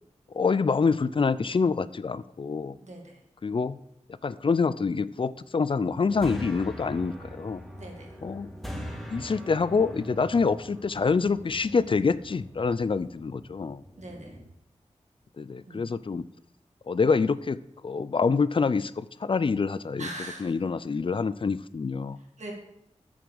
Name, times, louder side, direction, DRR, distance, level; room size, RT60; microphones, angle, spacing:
voice 1, 0.3-2.8 3.4-3.8 4.2-7.6 8.2-8.5 9.1-13.8 15.4-16.3 16.9-20.1 20.4-22.2, left 4 dB, 45° left, 16 dB, 0.4 m, -26 dB
voice 2, 2.8-3.2 7.8-8.2 14.0-14.4 15.7-15.9 20.0-20.5 22.4-22.5, right 2 dB, 65° right, 0 dB, 2.1 m, -41 dB
sound 1, 5.8-14.4, equal, ahead, 1.9 m, -42 dB
7.3 x 4.8 x 6.9 m, 0.77 s
cardioid pair, 40°, 13 cm